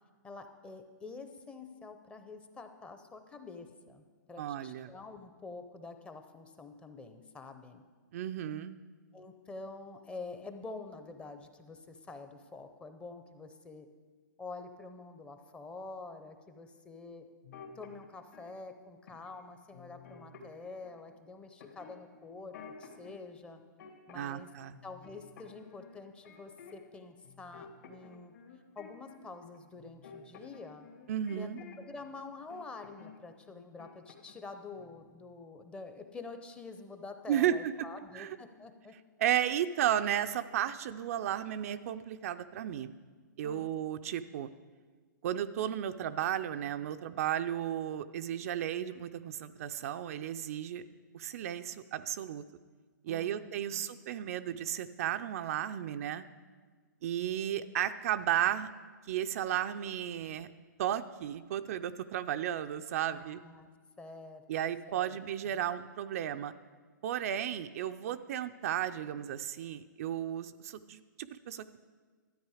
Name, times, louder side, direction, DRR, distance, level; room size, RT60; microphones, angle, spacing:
voice 1, 0.2-7.8 9.1-13.9 14.4-17.2 17.8-22.5 22.8-23.6 24.1-24.5 24.8-28.3 28.8-30.9 31.4-31.5 31.8-38.9 43.4-43.8 53.1-53.9 63.1-63.7 64.0-65.2 65.4-65.6, left 3 dB, 10° left, 7 dB, 0.6 m, -47 dB
voice 2, 4.4-4.9 8.1-8.8 24.1-24.7 31.1-31.6 37.3-37.9 38.1-38.4 39.2-43.0 43.4-44.5 45.2-50.8 51.1-52.4 53.0-56.3 57.0-58.7 59.1-60.5 60.8-63.4 64.5-66.5 67.0-71.8, right 10 dB, 50° right, 9 dB, 0.4 m, -34 dB
sound 1, 17.4-18.5 19.1-19.4 19.7-21.0 21.6-23.1 23.5-24.5 24.7-27.0 27.2-32.1 32.5-33.2 33.5-34.5 34.7-35.0, left 6 dB, 65° left, 2.1 m, -53 dB
12.5 x 8.9 x 4.9 m, 1.5 s
hypercardioid pair, 145°, 10 cm